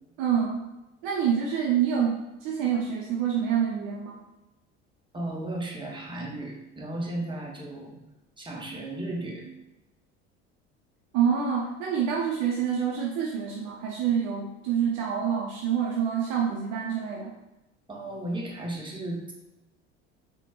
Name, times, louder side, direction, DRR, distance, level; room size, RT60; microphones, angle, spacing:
voice 1, 0.2-0.6 1.0-4.2 11.1-17.3, right 8 dB, 60° right, -2 dB, 0.6 m, -27 dB
voice 2, 5.1-8.0 8.4-9.5 17.9-19.3, right 1 dB, 15° right, -1 dB, 0.8 m, -35 dB
4.1 x 2.1 x 2.2 m, 1.0 s
hypercardioid pair, 65°, 35 cm